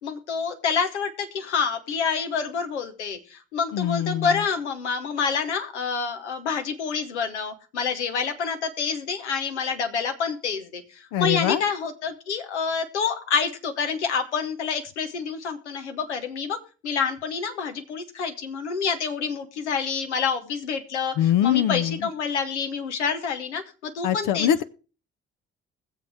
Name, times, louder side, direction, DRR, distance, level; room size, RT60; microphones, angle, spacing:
voice 1, 0.0-16.6 16.8-21.1 21.4-24.6, left 6 dB, 90° left, 7 dB, 1.1 m, -28 dB
voice 2, 3.7-4.4 11.1-11.6 21.2-22.1 24.0-24.6, left 10 dB, 65° left, 11 dB, 0.8 m, -23 dB
21.0 x 7.5 x 3.5 m, 0.35 s
hypercardioid pair, 45°, 33 cm